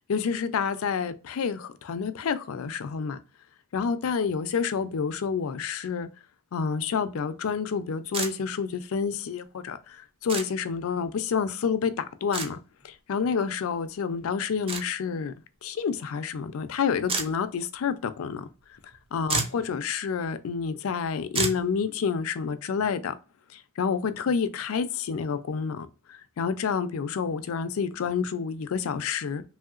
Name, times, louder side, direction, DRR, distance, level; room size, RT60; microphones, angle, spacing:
voice 1, 0.1-3.2 3.7-6.1 6.5-12.6 12.8-15.3 15.6-18.5 19.1-23.1 23.5-29.4, left 6 dB, 70° left, 0.4 m, -29 dB
sound 1, 8.1-8.3 10.3-10.5 12.3-12.5 14.7-14.8 17.1-17.3 18.9-19.0 19.2-19.6 21.3-21.6, right 4 dB, 25° right, 0.5 m, -28 dB
3.1 x 2.8 x 2.4 m
head